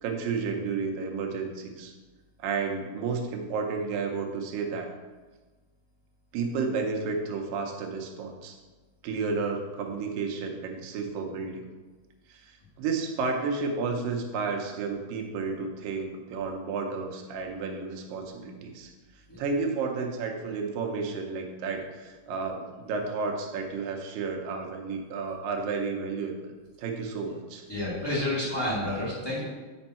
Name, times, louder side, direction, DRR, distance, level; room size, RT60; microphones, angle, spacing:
voice 1, 0.0-1.9 2.4-4.9 6.3-8.6 9.0-11.6 12.3-18.9 19.4-27.6, right 4 dB, 85° right, 2 dB, 2.6 m, -32 dB
voice 2, 27.7-29.4, left 1 dB, 15° left, -8 dB, 0.9 m, -29 dB
8.4 x 4.5 x 4.2 m, 1.3 s
omnidirectional pair, 3.9 m